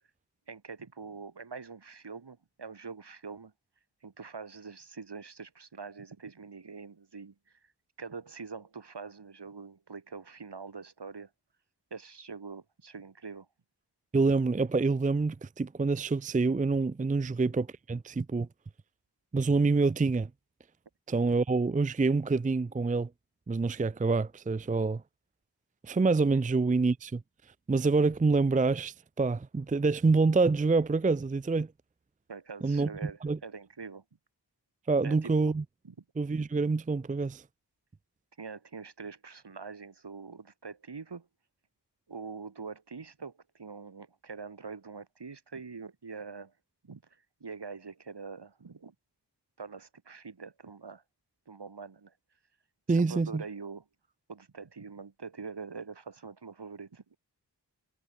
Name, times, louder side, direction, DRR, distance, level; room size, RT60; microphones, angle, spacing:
voice 1, 0.5-3.5 4.0-7.3 8.0-11.3 11.9-13.5 32.3-34.0 35.0-35.5 35.8-35.9 38.4-41.3 42.1-46.5 46.8-47.0 47.4-48.9 49.6-51.0 51.5-52.1 52.9-53.8 54.3-57.2, right 5 dB, 70° right, 5.8 m, -44 dB
voice 2, 14.1-18.5 19.3-20.3 21.1-23.1 23.5-25.0 25.8-27.2 27.7-31.7 32.6-33.4 34.9-35.6 36.2-37.4 52.9-53.4, right 3 dB, 20° right, 0.5 m, -26 dB
wide cardioid pair, 95°, 42 cm